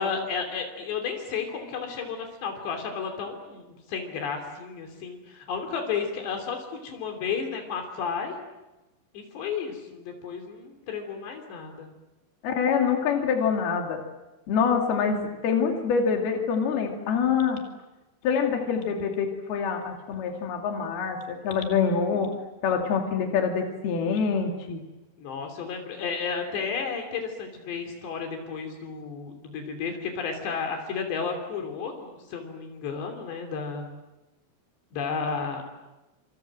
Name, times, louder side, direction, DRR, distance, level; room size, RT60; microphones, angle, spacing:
voice 1, 0.0-8.4 9.1-11.9 25.2-33.8 34.9-35.6, left 5 dB, 85° left, 4 dB, 5.3 m, -32 dB
voice 2, 12.4-14.0 14.5-17.6 18.2-22.3 22.6-24.8, left 6 dB, 65° left, 2 dB, 4.3 m, -25 dB
28.0 x 27.0 x 7.7 m, 1.0 s
omnidirectional pair, 4.8 m